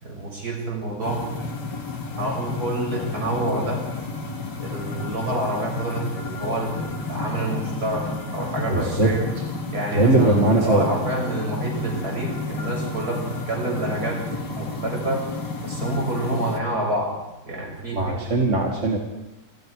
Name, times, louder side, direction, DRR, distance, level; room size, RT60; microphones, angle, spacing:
voice 1, 0.0-1.3 2.2-3.8 4.6-8.0 8.3-9.3 9.7-13.2 13.5-14.2 14.5-15.2 15.6-17.1 17.5-18.5, right 1 dB, 60° right, -1 dB, 7.4 m, -28 dB
sound 1, 1.0-16.6, left 3 dB, 90° left, 2.9 m, -31 dB
voice 2, 8.7-9.1 9.9-10.9 17.9-19.0, right 2 dB, 45° right, 1 dB, 2.5 m, -20 dB
28.5 x 26.5 x 4.9 m, 0.96 s
omnidirectional pair, 1.8 m